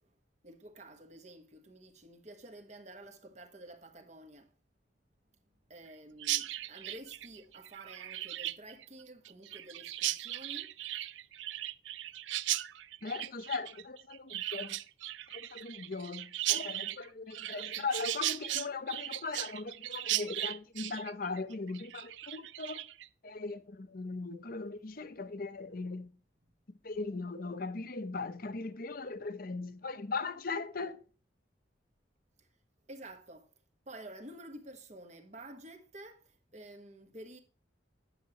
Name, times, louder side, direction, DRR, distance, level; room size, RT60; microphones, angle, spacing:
voice 1, 0.4-4.5 5.7-10.7 32.9-33.5 33.9-37.4, right 1 dB, 40° right, 1.4 m, -50 dB
Chirp tweet, 6.2-23.1, right 15 dB, 75° right, 0.4 m, -37 dB
voice 2, 13.0-14.8 15.3-22.9 23.2-26.1 26.8-31.0, left 4 dB, 50° left, 0.8 m, -39 dB
9.8 x 7.6 x 2.9 m
head